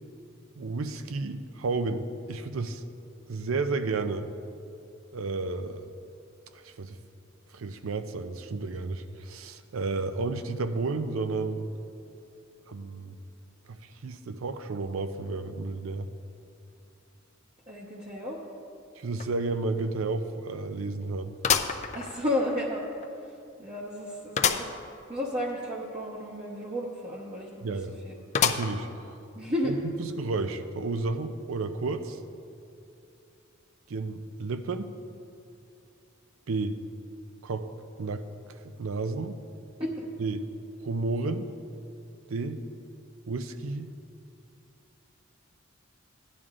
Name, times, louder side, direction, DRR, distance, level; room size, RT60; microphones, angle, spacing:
voice 1, 0.6-2.8 3.3-4.3 5.1-5.8 6.5-7.0 7.5-11.7 12.7-13.2 13.7-16.1 19.0-21.3 27.6-28.0 28.4-28.9 29.6-32.2 33.9-34.9 36.5-36.8 37.4-37.7 38.0-39.4 40.2-40.5 40.8-41.5 42.3-42.7 43.3-43.9, right 3 dB, 85° right, 9 dB, 0.5 m, -32 dB
voice 2, 17.7-18.4 21.9-22.8 23.6-24.7 25.1-27.7 28.0-28.1 29.3-29.7 39.8-40.0, left 1 dB, 25° right, -4 dB, 0.9 m, -32 dB
sound 1, 19.2-19.3 19.7-19.8 21.4-22.5 23.0-23.1 24.4-24.8 25.2-25.3 25.5-25.6 28.3-29.0 29.5-29.6 30.6-30.7, left 7 dB, 35° left, 0.4 m, -27 dB
17.0 x 10.5 x 2.5 m, 2.6 s
head